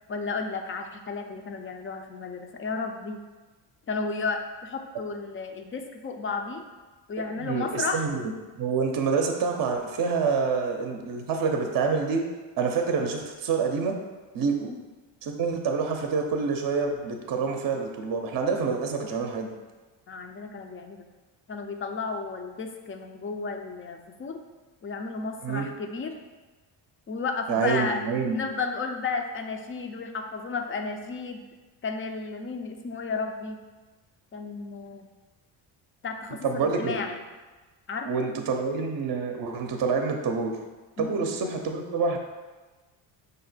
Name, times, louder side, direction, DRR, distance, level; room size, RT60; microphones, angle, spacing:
voice 1, 0.0-3.2 3.9-6.7 7.1-8.1 14.6-14.8 20.1-21.1 21.5-24.4 24.8-26.2 27.1-28.0 28.3-31.5 31.8-33.6 34.3-35.1 36.0-37.2 37.9-38.3 41.0-41.3, left 4 dB, 25° left, 5 dB, 0.4 m, -33 dB
voice 2, 7.4-12.2 12.6-14.0 14.3-14.7 15.2-19.5 25.4-25.7 27.5-28.4 36.4-37.0 38.1-40.5 41.0-42.2, right 5 dB, 45° right, 3 dB, 0.6 m, -27 dB
5.2 x 2.1 x 4.0 m, 1.3 s
supercardioid pair, 75°, 49 cm